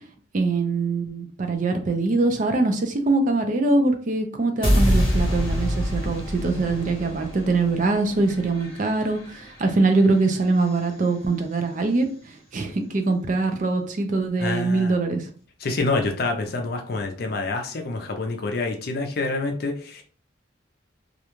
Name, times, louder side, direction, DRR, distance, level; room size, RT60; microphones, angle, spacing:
voice 1, 0.3-12.1 12.5-15.3, right 3 dB, 40° right, 6 dB, 0.4 m, -23 dB
sound 1, 4.6-10.8, equal, 25° left, 0.9 m, -26 dB
voice 2, 14.4-15.0 15.6-20.0, left 3 dB, 50° left, 4 dB, 0.4 m, -27 dB
2.4 x 2.2 x 2.9 m, 0.43 s
head